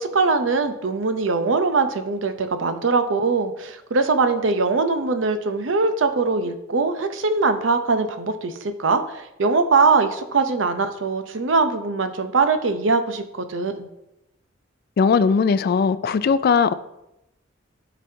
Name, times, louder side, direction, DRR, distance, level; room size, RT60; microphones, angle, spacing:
voice 1, 0.0-13.9, right 4 dB, 85° right, 8 dB, 0.7 m, -22 dB
voice 2, 15.0-16.7, left 5 dB, 55° left, 14 dB, 0.3 m, -18 dB
11.5 x 4.1 x 2.8 m, 0.87 s
head